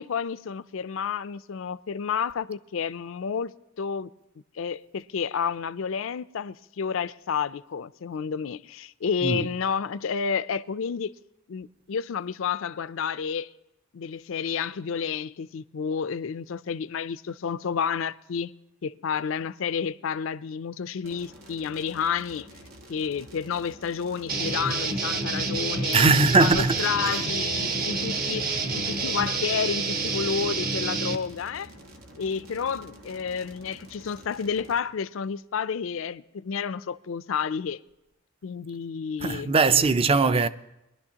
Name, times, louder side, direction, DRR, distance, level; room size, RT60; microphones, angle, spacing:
voice 1, 0.0-4.1 4.6-11.1 11.5-13.5 13.9-18.5 18.8-22.5 22.9-31.7 32.2-37.8 38.4-39.5, left 6 dB, 70° left, 0.4 m, -30 dB
sound 1, 21.0-34.8, right 1 dB, 90° right, 1.6 m, -49 dB
sound 2, 24.3-31.2, right 4 dB, 45° right, 1.0 m, -28 dB
voice 2, 25.9-26.9 39.2-40.5, right 4 dB, 25° right, 0.4 m, -20 dB
21.5 x 11.5 x 2.9 m
head